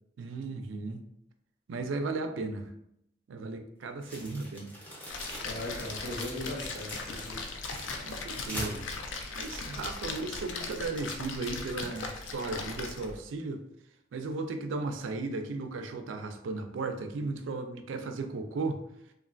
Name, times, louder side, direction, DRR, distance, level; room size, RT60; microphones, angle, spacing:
voice 1, 0.2-1.0 1.7-2.7 3.3-4.7 8.0-8.9 9.3-13.6 14.1-18.8, right 3 dB, 85° right, 6 dB, 0.4 m, -35 dB
sound 1, 4.0-10.1, equal, 10° left, 0.7 m, -43 dB
Splash splatter, 5.1-13.2, left 4 dB, 90° left, 0.4 m, -39 dB
voice 2, 5.4-7.4, left 1 dB, 70° left, -3 dB, 0.9 m, -38 dB
3.0 x 2.4 x 2.5 m, 0.75 s
head